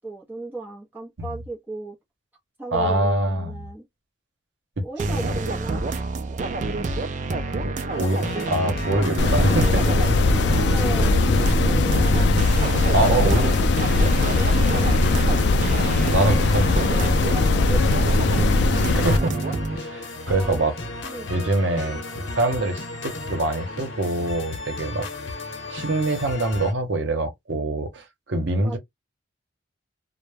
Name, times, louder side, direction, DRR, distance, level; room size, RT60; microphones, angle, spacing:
voice 1, 0.0-2.0 2.6-3.8 4.8-5.8 10.3-11.2 11.6-12.1 12.8-13.6 14.3-14.9 17.7-17.9 20.3-20.7 21.0-21.3 28.6-28.8, right 3 dB, 10° right, 0.7 m, -35 dB
voice 2, 2.7-3.7 4.8-5.5 7.6-10.0 12.9-13.5 13.9-14.2 16.0-17.2 18.9-19.4 19.7-20.8 21.3-25.1 25.7-28.8, right 2 dB, 80° right, 0.8 m, -25 dB
sound 1, 5.0-19.8, right 2 dB, 40° right, 0.3 m, -27 dB
sound 2, 7.9-26.7, left 2 dB, 90° left, 0.7 m, -34 dB
sound 3, 9.2-19.2, left 3 dB, 65° left, 0.3 m, -20 dB
2.2 x 2.0 x 3.2 m
head